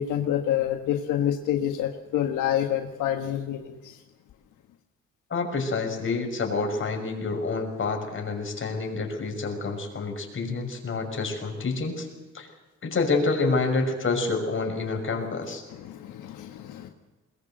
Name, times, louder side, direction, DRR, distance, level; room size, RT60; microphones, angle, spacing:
voice 1, 0.0-4.0 15.7-16.9, left 10 dB, 85° left, 5 dB, 1.5 m, -28 dB
voice 2, 5.3-12.1 12.3-12.5 12.8-15.6, left 3 dB, 40° left, 3 dB, 6.1 m, -28 dB
21.5 x 21.0 x 7.8 m, 1.2 s
cardioid pair, 90°, 30 cm